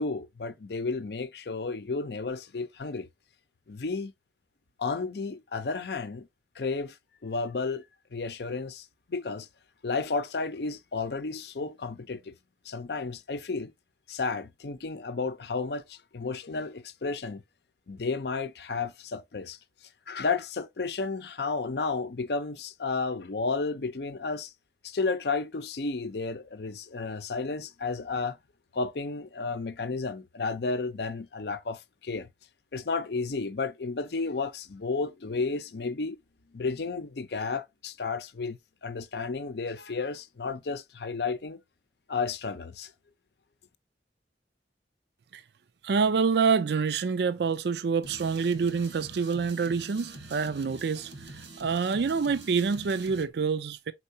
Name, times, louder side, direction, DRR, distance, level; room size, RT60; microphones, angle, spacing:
voice 1, 0.0-3.1 3.7-4.1 4.8-6.3 6.6-7.0 7.2-7.8 8.1-9.5 9.8-12.3 12.6-13.7 14.1-17.4 17.9-19.6 20.1-24.5 24.8-28.4 28.7-32.3 32.7-36.2 36.5-41.6 42.1-42.9, left 4 dB, 65° left, 0.6 m, -32 dB
voice 2, 45.8-51.1 51.6-53.9, right 5 dB, 70° right, 0.4 m, -27 dB
sound 1, 48.0-53.3, right 2 dB, 90° right, 1.3 m, -45 dB
4.5 x 4.3 x 2.7 m
head